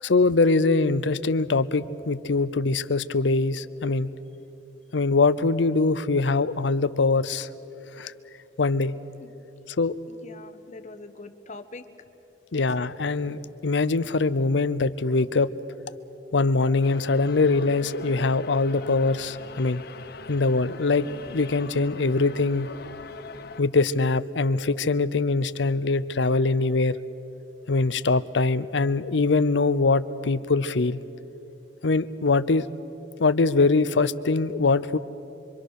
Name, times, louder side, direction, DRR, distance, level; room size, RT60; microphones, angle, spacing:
voice 1, 0.0-4.1 4.9-7.5 8.0-8.1 8.6-8.9 9.8-9.9 12.5-15.5 16.3-19.8 20.3-22.7 23.6-27.0 27.7-31.0 31.8-32.6 33.2-35.0, left 3 dB, 90° left, 15 dB, 0.7 m, -23 dB
voice 2, 10.1-11.8 12.7-12.8, left 2 dB, 40° left, 8 dB, 1.2 m, -43 dB
sound 1, 16.8-23.6, left 3 dB, 60° left, 0.8 m, -41 dB
25.0 x 24.5 x 6.5 m, 2.9 s
head